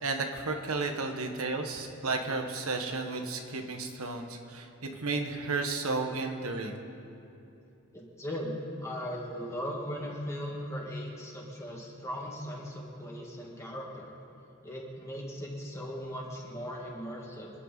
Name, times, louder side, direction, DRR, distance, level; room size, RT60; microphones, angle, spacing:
voice 1, 0.0-6.8, right 3 dB, 85° right, 4 dB, 1.5 m, -33 dB
voice 2, 7.9-14.1 14.6-17.5, equal, 15° left, -2 dB, 2.2 m, -38 dB
26.5 x 10.0 x 4.2 m, 2.7 s
head